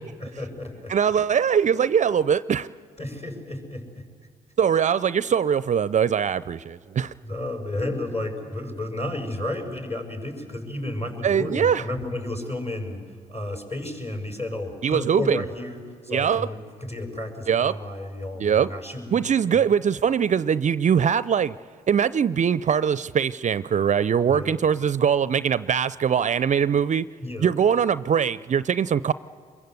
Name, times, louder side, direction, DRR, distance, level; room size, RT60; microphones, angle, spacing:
voice 1, 0.2-1.0 3.0-4.1 7.2-13.0 13.3-19.2 19.5-19.7 24.3-24.6 27.2-27.5, left 1 dB, 35° left, 3 dB, 7.0 m, -32 dB
voice 2, 0.9-2.7 4.6-7.1 11.2-11.8 14.8-15.4 16.1-16.5 17.5-17.8 18.4-18.7 19.1-21.6 21.9-27.0 27.4-29.1, right 7 dB, 40° right, 17 dB, 0.5 m, -22 dB
26.0 x 22.0 x 8.2 m, 2.2 s
hypercardioid pair, 45°, 18 cm